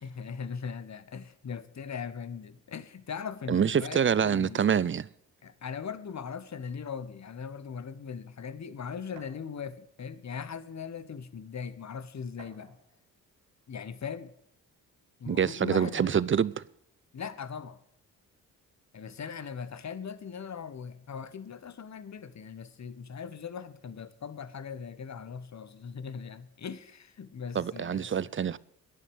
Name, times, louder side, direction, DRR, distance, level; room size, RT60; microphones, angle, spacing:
voice 1, 0.0-4.8 5.4-12.8 13.7-14.3 15.2-16.1 17.1-17.8 18.9-28.2, left 6 dB, 40° left, 1.3 m, -40 dB
voice 2, 3.5-5.1 15.3-16.6 27.5-28.6, right 7 dB, 30° right, 0.6 m, -26 dB
sound 1, 9.2-9.4 10.6-10.7 11.1-11.2 12.4-13.0 13.9-14.0 15.7-16.1, right 5 dB, 80° right, 2.6 m, -52 dB
11.0 x 9.5 x 7.9 m
hypercardioid pair, 40°, 43 cm